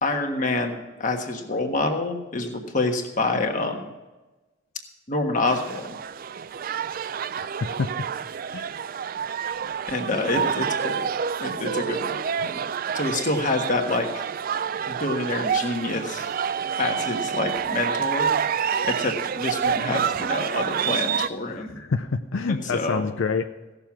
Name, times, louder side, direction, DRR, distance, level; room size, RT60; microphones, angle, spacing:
voice 1, 0.0-3.9 5.1-6.0 9.9-11.1 11.4-12.2 12.5-12.6 12.9-14.2 14.9-16.3 16.8-18.4 18.8-21.8 22.5-23.0, left 2 dB, 40° left, 4 dB, 1.4 m, -27 dB
sound 1, 5.4-21.3, right 7 dB, 45° right, 0.3 m, -28 dB
voice 2, 7.4-7.9 8.5-8.7 10.4-10.5 11.4-11.6 12.4-12.5 13.1-13.2 21.5-23.5, left 4 dB, 75° left, 8 dB, 0.5 m, -28 dB
16.5 x 6.9 x 5.9 m, 1.2 s
head